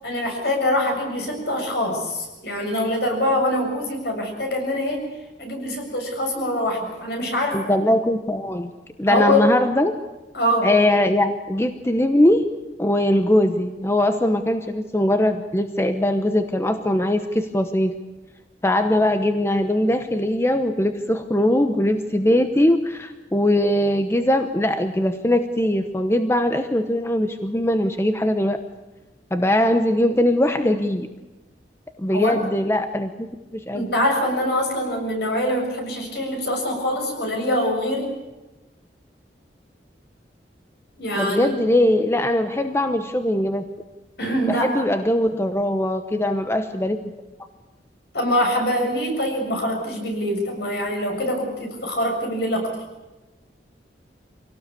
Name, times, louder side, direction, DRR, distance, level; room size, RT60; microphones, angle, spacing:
voice 1, 0.0-5.0 5.4-7.7 9.1-9.5 10.3-10.7 32.1-32.4 33.7-38.1 41.0-41.7 44.2-44.7 48.1-52.7, left 1 dB, 65° left, 2 dB, 7.1 m, -24 dB
voice 2, 7.5-8.7 9.0-9.9 10.6-12.5 12.8-17.9 18.6-28.6 29.3-31.1 32.0-33.3 33.5-33.8 41.2-43.6 44.5-47.0, left 1 dB, 15° left, 7 dB, 0.9 m, -21 dB
25.0 x 18.0 x 8.4 m, 1.1 s
head